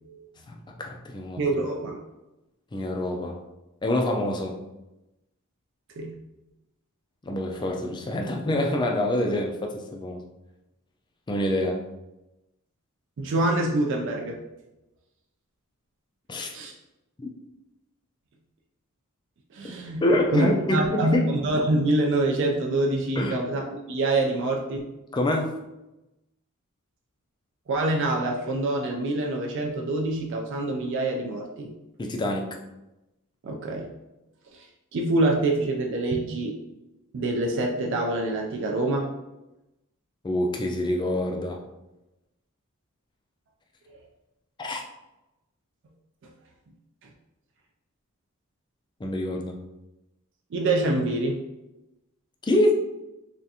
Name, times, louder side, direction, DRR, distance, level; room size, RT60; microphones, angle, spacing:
voice 1, 0.5-1.4 2.7-3.4 3.8-4.6 7.3-10.2 11.3-11.8 16.3-16.5 17.2-17.3 20.0-21.3 23.2-23.4 25.1-25.6 32.0-32.6 40.2-41.6 44.6-44.8 49.0-49.5 52.4-52.8, left 1 dB, 20° left, 2 dB, 0.3 m, -26 dB
voice 2, 1.4-2.0 6.0-6.2 13.2-14.4 16.5-16.7 19.5-20.0 20.3-24.9 27.7-31.7 33.4-33.9 34.5-34.7 34.9-36.6 37.1-39.1 46.2-46.3 47.0-47.1 50.5-51.4, right 2 dB, 55° right, 0 dB, 0.4 m, -26 dB
3.4 x 2.4 x 2.7 m, 0.96 s
head